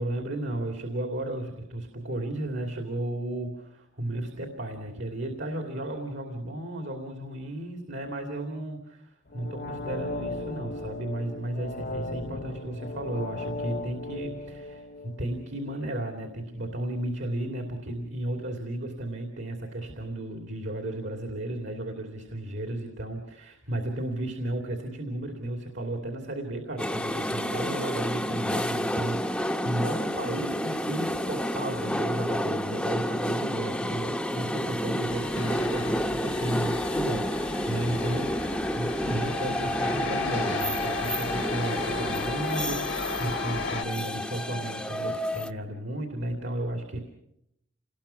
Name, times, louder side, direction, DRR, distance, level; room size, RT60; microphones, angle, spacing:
voice 1, 0.0-47.0, right 1 dB, 65° right, 4 dB, 2.8 m, -34 dB
sound 1, 9.3-16.1 16.5-16.6, left 2 dB, 55° left, 1.2 m, -37 dB
sound 2, 26.8-45.5, equal, 5° left, 0.8 m, -30 dB
sound 3, 35.1-43.8, left 4 dB, 80° left, 1.9 m, -35 dB
27.5 x 20.5 x 5.9 m, 0.79 s
head